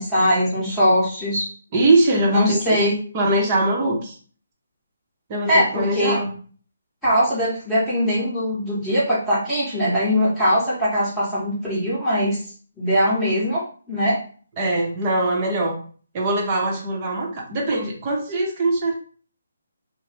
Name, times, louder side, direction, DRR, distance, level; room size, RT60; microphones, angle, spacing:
voice 1, 0.0-1.5 2.3-3.0 5.5-6.2 7.0-12.4 12.8-13.6 13.9-14.2, equal, 5° left, -11 dB, 1.0 m, -21 dB
voice 2, 1.7-2.8 3.1-4.2 5.3-6.3 14.6-15.7 16.1-18.9, right 2 dB, 30° right, -1 dB, 0.7 m, -22 dB
2.6 x 2.0 x 3.3 m, 0.43 s
figure-of-eight pair, 150°, 0 cm